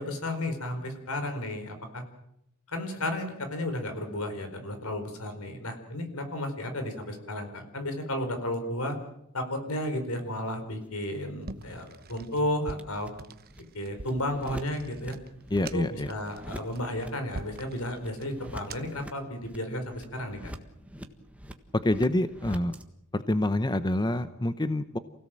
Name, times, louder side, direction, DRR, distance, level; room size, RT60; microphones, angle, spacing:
voice 1, 0.0-2.0 2.7-9.0 9.3-13.1 13.7-15.2 15.7-20.5, left 1 dB, 75° left, 7 dB, 4.6 m, -33 dB
sound 1, 10.8-22.8, equal, 5° right, 1.5 m, -47 dB
sound 2, 11.4-19.1, right 3 dB, 45° right, 1.0 m, -45 dB
voice 2, 15.5-16.1 21.8-22.7 23.1-25.0, left 1 dB, 20° left, 11 dB, 0.8 m, -27 dB
28.5 x 17.0 x 7.6 m, 0.81 s
head